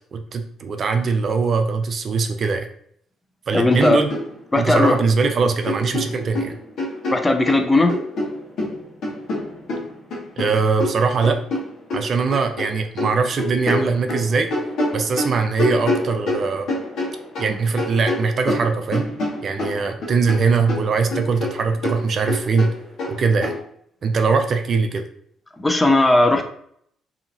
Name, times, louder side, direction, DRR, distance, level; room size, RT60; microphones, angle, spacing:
voice 1, 0.0-2.7 3.5-4.1 4.6-6.6 10.4-11.4 11.9-14.5 14.9-16.7 17.4-19.1 19.4-22.7 23.1-23.5 24.0-25.0, right 4 dB, 50° right, 6 dB, 0.4 m, -21 dB
voice 2, 3.5-4.0 4.5-5.0 7.1-8.0 25.6-26.4, left 2 dB, 20° left, 5 dB, 0.5 m, -17 dB
sound 1, 3.7-3.8 4.1-5.3 5.7-7.6 7.9-12.7 13.0-17.5 17.8-20.4 20.7-23.6, left 1 dB, 65° left, 1.0 m, -26 dB
2.7 x 2.7 x 2.5 m, 0.65 s
supercardioid pair, 60°, 0 cm